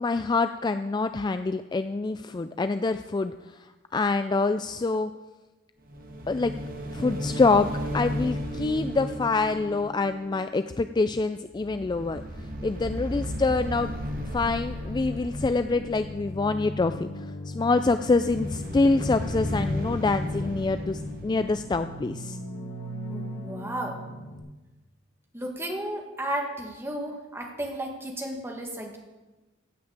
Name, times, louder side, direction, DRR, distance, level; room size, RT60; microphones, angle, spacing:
voice 1, 0.0-5.1 6.3-6.5 6.9-7.7 7.9-12.2 12.6-13.9 14.3-22.4, left 3 dB, 20° left, 10 dB, 0.3 m, -26 dB
sound 1, 5.8-11.2 11.5-16.7 17.7-22.5, equal, 45° right, 1.7 m, -34 dB
sound 2, 15.3-24.4, left 1 dB, 90° left, 3.5 m, -38 dB
voice 2, 23.1-24.0 25.3-29.0, right 1 dB, 10° right, 1 dB, 1.9 m, -33 dB
15.5 x 6.0 x 8.8 m, 1.1 s
head